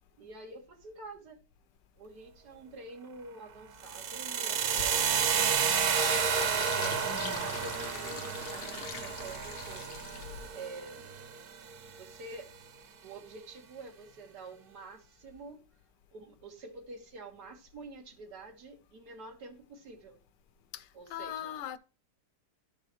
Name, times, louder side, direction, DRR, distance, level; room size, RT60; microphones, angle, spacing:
voice 1, 0.2-1.4 2.0-5.4 6.7-10.2 10.5-11.1 12.0-12.5 13.0-15.7 16.1-20.2 20.9-21.6, right 3 dB, 65° right, 2.1 m, -48 dB
sound 1, 3.8-11.8, right 7 dB, 85° right, 0.5 m, -31 dB
Fill (with liquid), 4.8-10.5, left 6 dB, 75° left, 1.6 m, -42 dB
voice 2, 7.1-7.5 20.7-21.8, left 10 dB, 90° left, 1.3 m, -41 dB
13.5 x 4.7 x 3.1 m
omnidirectional pair, 1.9 m